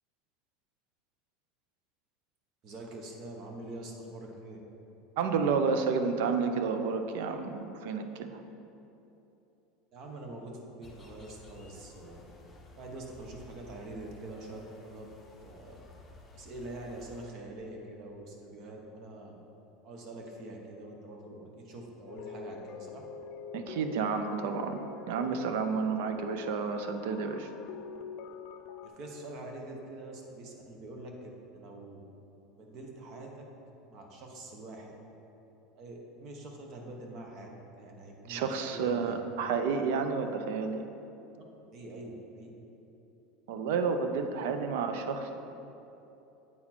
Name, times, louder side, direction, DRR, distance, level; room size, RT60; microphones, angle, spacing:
voice 1, 2.6-4.6 9.9-12.2 12.7-15.1 15.4-15.8 16.3-19.4 19.8-23.0 28.8-32.0 32.6-33.4 33.9-34.9 35.8-39.1 41.7-42.5 45.1-45.2 45.6-45.7, right 2 dB, 45° right, 1 dB, 1.1 m, -45 dB
voice 2, 5.2-8.4 23.5-24.8 25.1-27.5 38.3-40.8 43.5-45.2, right 5 dB, 75° right, 7 dB, 0.5 m, -30 dB
sound 1, 10.8-17.3, left 2 dB, 15° left, 0.7 m, -54 dB
sound 2, 22.1-28.9, left 5 dB, 55° left, 0.4 m, -44 dB
8.5 x 4.2 x 4.3 m, 3.0 s
supercardioid pair, 145°, 0 cm